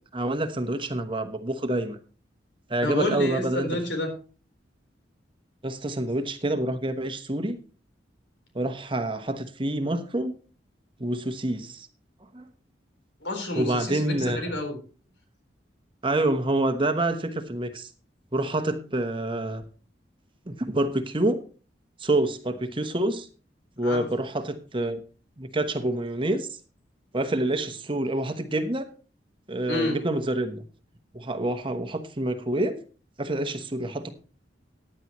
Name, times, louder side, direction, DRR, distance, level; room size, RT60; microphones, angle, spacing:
voice 1, 0.0-2.0 2.7-3.7 5.6-7.6 8.5-10.4 11.0-11.9 12.3-12.5 13.5-14.4 16.0-17.9 18.3-19.6 20.5-21.4 22.0-23.3 23.8-25.0 25.4-26.5 27.1-28.9 29.5-30.6 31.1-32.8 33.2-34.1, right 1 dB, 30° right, 8 dB, 1.0 m, -27 dB
voice 2, 2.8-4.1 13.2-14.8 23.8-24.1 29.7-30.0, left 2 dB, 75° left, 3 dB, 4.0 m, -29 dB
15.5 x 9.9 x 3.1 m, 0.36 s
head